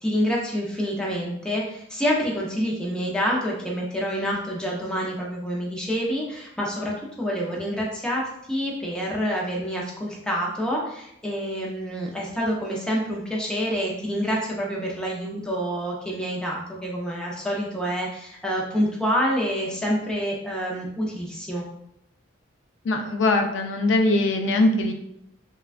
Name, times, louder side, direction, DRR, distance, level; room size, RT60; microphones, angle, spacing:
voice 1, 0.0-21.6, equal, 5° left, -3 dB, 0.4 m, -27 dB
voice 2, 22.8-24.9, left 2 dB, 65° left, 4 dB, 0.4 m, -21 dB
3.3 x 2.2 x 2.4 m, 0.78 s
head